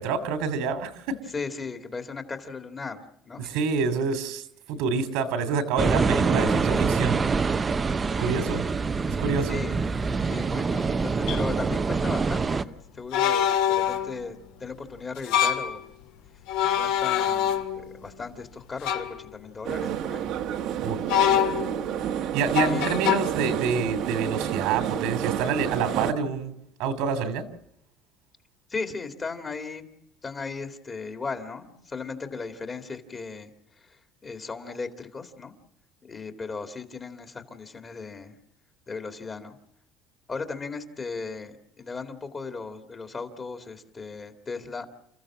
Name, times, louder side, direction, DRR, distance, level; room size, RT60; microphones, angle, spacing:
voice 1, 0.0-1.2 3.4-7.5 8.1-8.6 9.0-9.6 20.8-21.0 22.3-26.5 26.8-27.5, right 5 dB, 80° right, 9 dB, 2.9 m, -27 dB
voice 2, 1.3-3.6 9.5-9.8 10.2-15.9 16.6-20.3 22.7-22.9 28.7-29.9 30.2-33.5 33.8-34.0 34.2-35.5 36.0-38.4 38.9-39.6 40.3-44.9, left 4 dB, 25° left, 6 dB, 2.2 m, -37 dB
sound 1, 5.8-12.6, right 4 dB, 20° right, 0.8 m, -25 dB
sound 2, 10.3-10.4 11.3-11.4 13.1-14.2 15.2-15.7 16.5-17.9 18.8-19.2 21.1-21.9 22.5-23.2, left 10 dB, 80° left, 2.2 m, -24 dB
sound 3, 19.6-26.1, right 9 dB, 60° right, 1.4 m, -29 dB
29.5 x 15.0 x 7.4 m, 0.78 s
cardioid pair, 145°, 0 cm